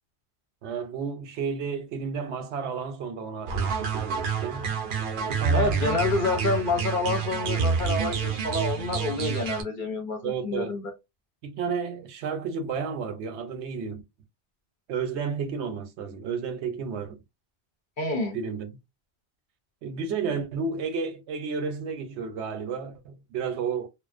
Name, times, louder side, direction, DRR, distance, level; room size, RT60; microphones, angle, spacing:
voice 1, 0.6-5.8 10.2-10.8 11.4-14.0 14.9-17.2 18.3-18.7 19.8-23.9, right 5 dB, 80° right, 0.9 m, -32 dB
sound 1, 3.5-9.6, right 6 dB, 60° right, 0.6 m, -28 dB
voice 2, 5.5-10.9 18.0-18.4, left 3 dB, 55° left, 0.7 m, -28 dB
2.5 x 2.1 x 2.4 m
omnidirectional pair, 1.1 m